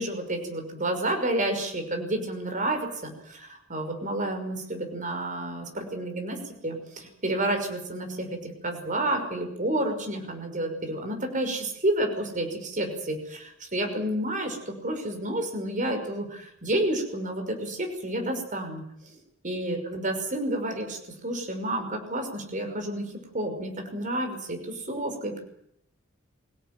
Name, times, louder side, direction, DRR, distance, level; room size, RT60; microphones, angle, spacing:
voice 1, 0.0-19.2 19.4-25.4, right 1 dB, 40° right, 4 dB, 5.8 m, -30 dB
25.0 x 17.5 x 9.3 m, 0.71 s
head